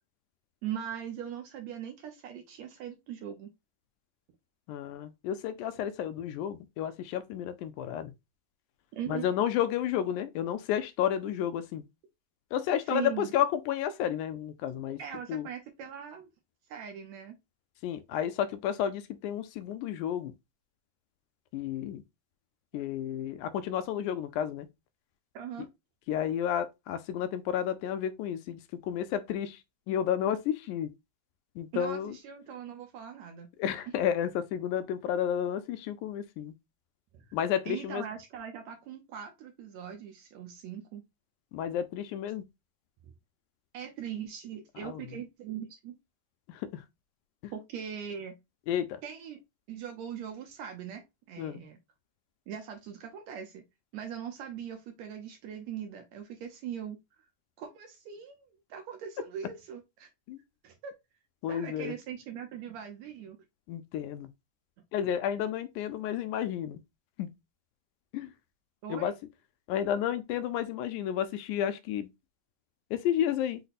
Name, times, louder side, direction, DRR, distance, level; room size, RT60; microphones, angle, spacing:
voice 1, 0.6-3.5 8.9-9.3 12.9-13.3 15.0-16.3 16.7-17.4 22.7-22.8 25.3-25.7 31.7-33.5 37.1-37.4 37.7-41.0 43.7-45.9 47.5-48.4 49.0-49.4 49.7-51.8 52.5-53.6 53.9-57.0 57.6-60.1 60.6-60.9 61.5-63.4 68.8-69.1, right 9 dB, 75° right, 1.7 m, -40 dB
voice 2, 4.7-8.1 9.1-11.9 12.5-15.0 15.3-15.5 17.8-20.3 21.5-22.0 22.7-24.7 26.1-30.9 31.6-32.2 33.6-36.5 37.3-38.1 41.5-42.5 44.8-45.2 46.5-46.8 47.4-47.5 48.7-49.0 51.4-51.6 60.3-60.4 61.4-61.9 63.7-64.3 64.9-66.8 67.2-67.3 68.1-68.3 68.9-69.1 69.7-72.1 72.9-73.6, left 10 dB, 80° left, 1.9 m, -31 dB
5.8 x 2.1 x 4.0 m
omnidirectional pair, 3.7 m